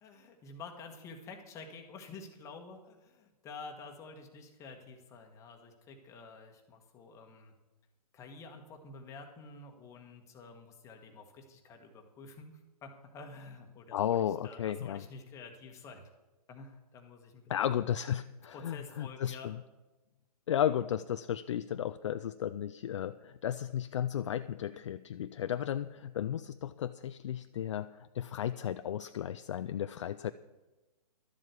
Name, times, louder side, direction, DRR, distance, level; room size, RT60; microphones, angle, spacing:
voice 1, 0.0-7.5 8.1-14.2 14.4-16.1 16.5-17.4 18.5-19.5, left 4 dB, 15° left, 4 dB, 1.3 m, -49 dB
voice 2, 13.9-15.0 17.5-19.6 20.5-30.3, left 10 dB, 45° left, 12 dB, 0.4 m, -34 dB
12.0 x 7.5 x 8.2 m, 1.1 s
hypercardioid pair, 145°, 21 cm